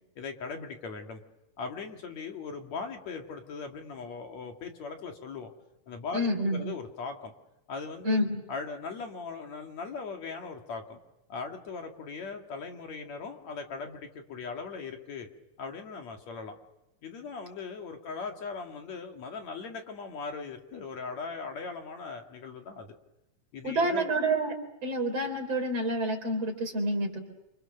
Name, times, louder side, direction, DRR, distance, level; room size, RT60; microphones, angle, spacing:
voice 1, 0.2-1.2 1.6-5.5 5.9-7.3 7.7-8.2 8.5-11.0 11.3-15.3 15.6-16.5 17.0-23.0 23.5-24.1, left 4 dB, 60° left, 3 dB, 3.2 m, -39 dB
voice 2, 6.1-6.6 8.0-8.4 23.6-24.6 24.8-27.2, right 1 dB, 50° right, 3 dB, 5.1 m, -28 dB
29.5 x 26.5 x 6.6 m, 0.90 s
omnidirectional pair, 3.6 m